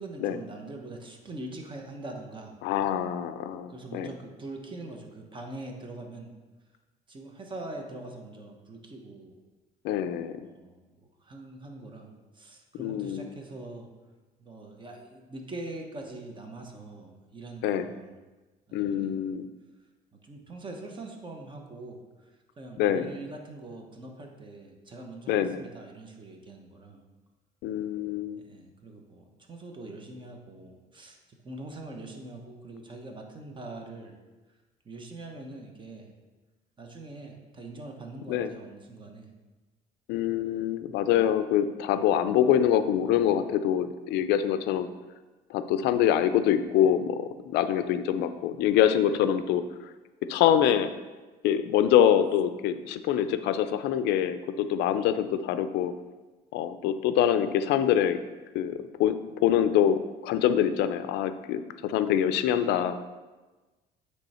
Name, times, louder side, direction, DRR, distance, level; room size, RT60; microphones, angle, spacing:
voice 1, 0.0-2.6 3.7-6.3 7.1-9.3 10.4-10.8 11.2-13.9 14.4-18.1 18.7-19.2 20.2-22.3 22.6-27.0 28.4-34.2 34.8-36.1 36.8-39.3, right 2 dB, 30° right, 2 dB, 1.0 m, -43 dB
voice 2, 2.6-4.1 9.8-10.4 12.8-13.3 17.6-17.9 18.7-19.5 22.8-23.1 25.3-25.6 27.6-28.4 38.3-38.5 40.1-44.9 45.5-49.6 50.3-50.9 51.4-55.9 56.5-58.2 58.5-58.7 59.0-59.1 59.4-63.1, left 10 dB, 85° left, 11 dB, 0.4 m, -25 dB
8.3 x 3.3 x 4.2 m, 1.2 s
cardioid pair, 110°, 17 cm